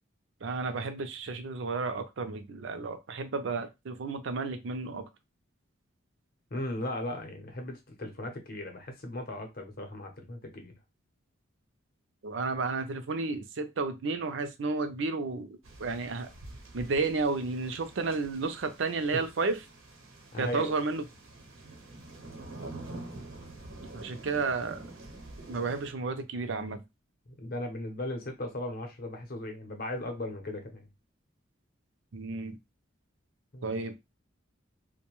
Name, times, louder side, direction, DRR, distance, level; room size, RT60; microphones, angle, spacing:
voice 1, 0.4-5.1 12.2-16.3 16.7-19.6 20.4-21.0 23.9-24.8 25.5-26.8 32.1-32.6 33.6-33.9, right 3 dB, 65° right, 0.5 m, -32 dB
voice 2, 6.5-10.8 19.1-19.2 20.3-20.7 27.3-30.9 33.5-33.8, left 1 dB, 45° left, 0.7 m, -37 dB
sound 1, 15.6-25.9, right 2 dB, 85° right, 0.9 m, -47 dB
2.6 x 2.1 x 3.0 m
head